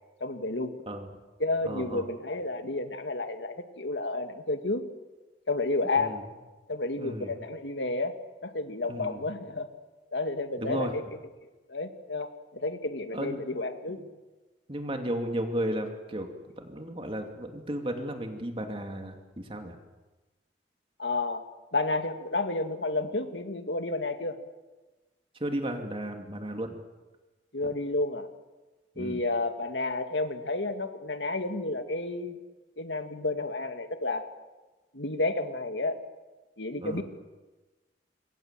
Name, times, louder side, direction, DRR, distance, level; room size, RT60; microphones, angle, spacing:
voice 1, 0.2-0.7 1.4-4.8 5.5-6.2 6.7-9.7 10.1-11.0 11.4-14.0 21.0-21.4 21.7-24.4 27.5-28.3 29.0-32.4 32.8-34.3 34.9-36.0 36.6-37.0, left 2 dB, 85° left, 7 dB, 2.2 m, -31 dB
voice 2, 1.6-2.1 6.0-6.2 7.0-7.3 8.9-9.2 10.6-10.9 13.1-13.4 13.9-14.0 14.7-16.3 16.6-19.8 25.4-26.8 29.0-29.2 36.8-37.0, right 1 dB, 30° right, 4 dB, 2.7 m, -34 dB
27.5 x 23.5 x 7.6 m, 1.2 s
head